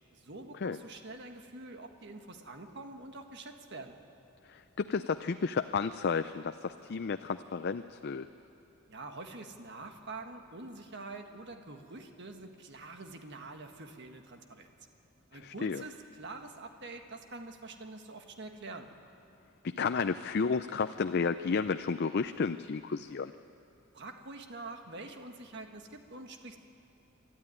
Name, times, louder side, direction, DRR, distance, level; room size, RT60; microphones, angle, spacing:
voice 1, 0.1-4.0 8.9-14.7 15.3-18.9 23.9-26.6, right 2 dB, 55° right, 5 dB, 1.6 m, -46 dB
voice 2, 4.5-8.3 15.4-15.8 19.6-23.3, left 5 dB, 50° left, 9 dB, 0.4 m, -32 dB
26.5 x 12.5 x 9.8 m, 2.8 s
head